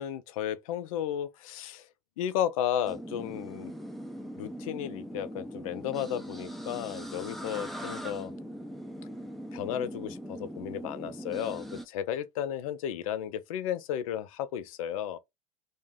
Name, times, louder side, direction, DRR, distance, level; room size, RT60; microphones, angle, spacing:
voice 1, 0.0-1.9 2.2-3.7 4.4-8.3 9.5-15.2, left 10 dB, 65° left, 0.4 m, -33 dB
sound 1, 2.9-11.9, equal, ahead, 0.5 m, -41 dB
2.5 x 2.1 x 3.4 m
figure-of-eight pair, 80°, 19 cm